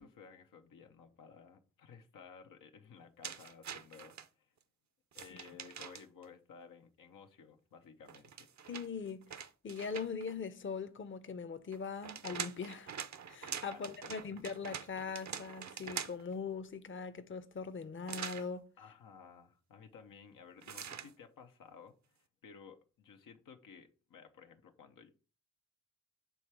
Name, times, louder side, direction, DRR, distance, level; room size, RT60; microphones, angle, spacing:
voice 1, 0.0-4.5 5.1-8.5 13.7-14.4 18.8-25.1, left 6 dB, 90° left, 0.8 m, -56 dB
sound 1, 3.2-4.3 5.1-6.3 8.1-10.3 11.7-16.4 18.1-18.5 20.6-21.1, right 8 dB, 60° right, 0.6 m, -44 dB
voice 2, 8.7-9.3 9.6-12.9 13.3-18.6, left 5 dB, 40° left, 0.7 m, -41 dB
7.1 x 3.3 x 4.7 m
cardioid pair, 50°, 32 cm